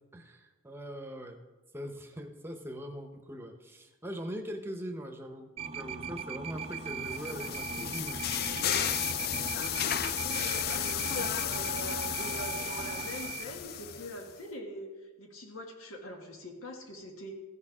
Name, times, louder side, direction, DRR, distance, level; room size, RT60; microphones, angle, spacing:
voice 1, 0.1-1.4 1.7-9.0, equal, 10° right, 5 dB, 0.9 m, -42 dB
sound 1, 5.6-13.4, right 6 dB, 30° right, 0.5 m, -39 dB
sound 2, 6.8-14.3, left 9 dB, 50° left, 0.4 m, -33 dB
voice 2, 10.2-11.1 11.4-17.3, equal, 85° left, 2 dB, 1.6 m, -43 dB
14.5 x 6.7 x 4.9 m, 1.2 s
head